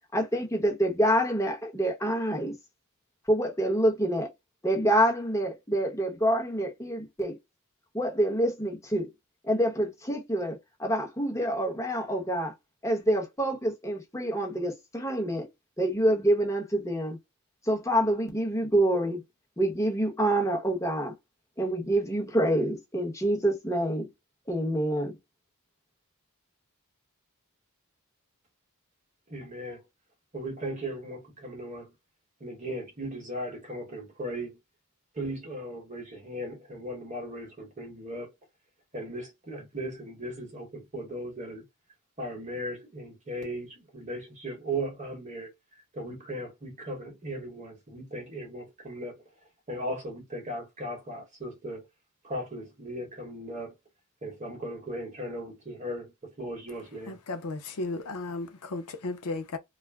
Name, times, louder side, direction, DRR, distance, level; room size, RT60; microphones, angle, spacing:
voice 1, 0.1-2.6 3.3-4.3 4.6-7.4 7.9-9.1 9.4-12.5 12.8-15.5 15.8-17.2 17.6-19.2 19.6-21.1 21.6-24.1 24.5-25.2, right 1 dB, 15° left, 0.9 m, -27 dB
voice 2, 29.3-29.8 30.3-31.9 32.4-34.6 35.1-38.3 38.9-41.6 42.2-45.5 45.9-49.2 49.7-51.8 52.2-53.7 54.2-57.2, right 1 dB, 30° right, 1.0 m, -37 dB
voice 3, 57.1-59.6, left 3 dB, 80° left, 0.6 m, -34 dB
2.4 x 2.1 x 3.3 m
head